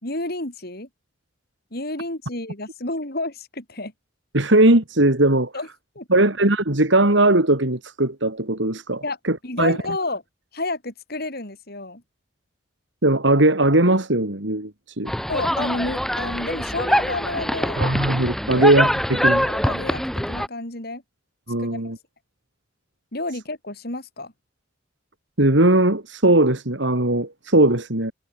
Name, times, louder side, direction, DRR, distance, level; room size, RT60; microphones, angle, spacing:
voice 1, 0.0-0.9 1.7-3.9 5.5-5.7 5.9-6.2 9.0-9.2 9.4-10.2 10.5-12.0 15.3-17.9 18.5-18.7 19.4-21.0 21.6-21.9 23.1-24.3, left 2 dB, 50° left, 5.1 m, -30 dB
voice 2, 4.3-5.5 6.1-9.8 13.0-15.1 17.8-19.5 21.5-22.0 25.4-28.1, right 1 dB, 65° right, 2.9 m, -19 dB
sound 1, 15.1-20.5, equal, ahead, 1.9 m, -24 dB
head